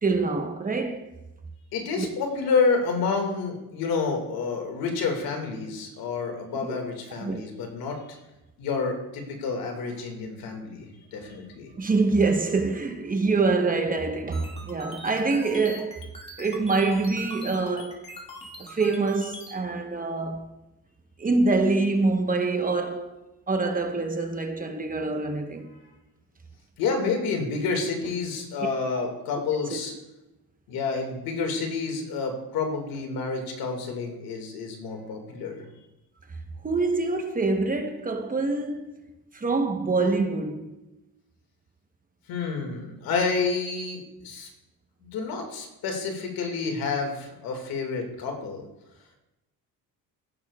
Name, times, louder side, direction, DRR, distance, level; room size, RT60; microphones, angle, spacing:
voice 1, 0.0-1.1 2.0-2.1 6.7-6.8 7.2-7.4 11.8-16.1 16.4-18.0 18.6-20.4 21.2-23.2 23.5-25.7 28.9-29.0 29.7-29.8 36.6-39.0 39.3-40.8, right 3 dB, 25° right, 1.0 m, -25 dB
voice 2, 1.7-8.2 8.6-11.7 26.8-29.9 30.7-35.7 42.3-44.5 45.0-48.6, left 4 dB, 80° left, 2.1 m, -29 dB
sound 1, 14.3-19.5, left 1 dB, 15° left, 2.1 m, -42 dB
16.0 x 6.8 x 2.4 m
cardioid pair, 105°, 36 cm